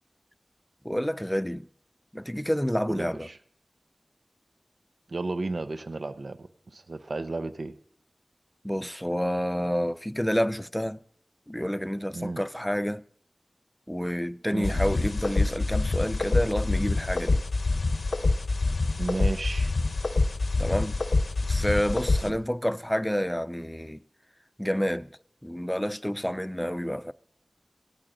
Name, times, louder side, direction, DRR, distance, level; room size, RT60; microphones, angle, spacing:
voice 1, 0.8-1.7 2.1-3.3 8.6-11.0 11.5-13.0 13.9-17.4 20.6-21.0 21.5-24.0 24.6-25.1 25.4-27.1, equal, 10° left, 0.5 m, -29 dB
voice 2, 2.9-3.4 5.1-7.7 12.1-12.4 14.5-14.8 19.0-19.7 22.2-22.4, right 2 dB, 80° right, 0.7 m, -33 dB
sound 1, 14.6-22.3, left 3 dB, 85° left, 0.9 m, -26 dB
17.0 x 13.0 x 3.9 m
wide cardioid pair, 40°, 0 cm